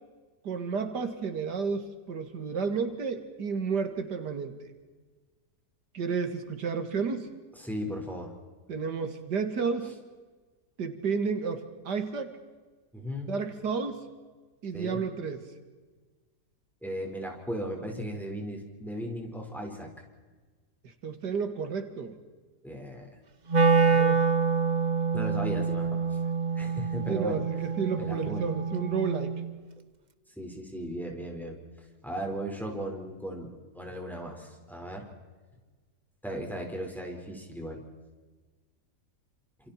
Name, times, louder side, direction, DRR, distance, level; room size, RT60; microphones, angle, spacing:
voice 1, 0.4-4.7 5.9-7.3 8.7-9.9 10.8-12.3 13.3-14.1 14.6-15.5 21.0-22.2 23.8-24.2 27.1-29.4, right 5 dB, 90° right, 8 dB, 2.5 m, -31 dB
voice 2, 7.6-8.3 12.9-13.3 14.7-15.0 16.8-19.9 22.6-23.1 25.1-26.2 26.5-27.4 28.0-28.5 30.4-31.6 32.0-35.1 36.2-37.8, equal, ahead, 0 dB, 4.7 m, -36 dB
Wind instrument woodwind instrument, 23.5-29.6, right 5 dB, 35° right, 0.8 m, -26 dB
29.0 x 27.5 x 4.4 m, 1.3 s
omnidirectional pair, 1.7 m